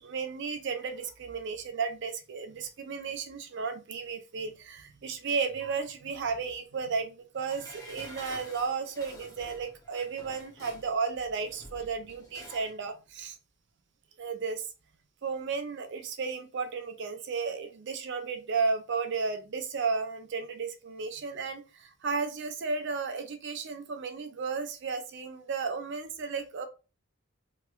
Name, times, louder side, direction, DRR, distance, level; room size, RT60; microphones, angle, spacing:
voice 1, 0.0-13.4 14.2-14.7 15.2-26.7, right 5 dB, 55° right, 7 dB, 0.5 m, -34 dB
Dishes pots and pans, 7.5-12.8 13.1-13.2, left 1 dB, 15° left, 0.6 m, -49 dB
3.0 x 2.9 x 2.3 m, 0.31 s
head